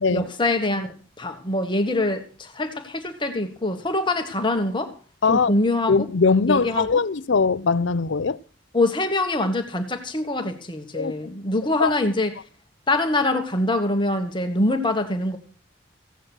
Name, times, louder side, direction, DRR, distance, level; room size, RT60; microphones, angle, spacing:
voice 1, 0.1-4.9 5.3-6.1 6.5-6.9 8.7-12.3 12.9-15.4, left 2 dB, 25° left, 1.5 m, -24 dB
voice 2, 5.9-8.4 10.9-11.4 11.8-11.9, left 4 dB, 75° left, 0.6 m, -21 dB
16.0 x 9.0 x 6.2 m
head